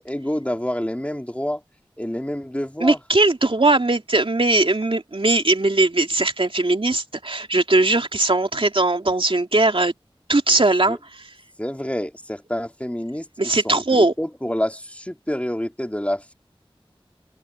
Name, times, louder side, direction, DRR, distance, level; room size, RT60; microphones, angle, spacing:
voice 1, 0.0-1.6 2.0-3.0 10.9-11.0 11.6-13.3 13.6-16.3, equal, 15° left, 2.6 m, -27 dB
voice 2, 2.8-9.9 10.3-11.2 13.4-14.1, right 2 dB, 65° right, 2.6 m, -19 dB
open air
wide cardioid pair, 40°, 10 cm